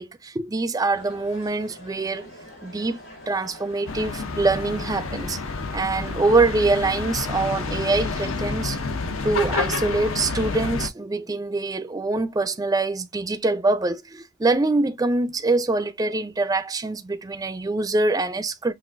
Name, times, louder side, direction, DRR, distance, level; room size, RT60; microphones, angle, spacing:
voice 1, 0.0-2.3 2.6-3.0 3.3-5.4 5.7-8.8 9.2-18.7, right 3 dB, 15° right, 0.4 m, -24 dB
sound 1, 0.9-10.4, left 1 dB, 85° left, 3.6 m, -45 dB
sound 2, 3.9-10.9, left 4 dB, 70° left, 0.7 m, -29 dB
5.9 x 2.5 x 2.5 m
head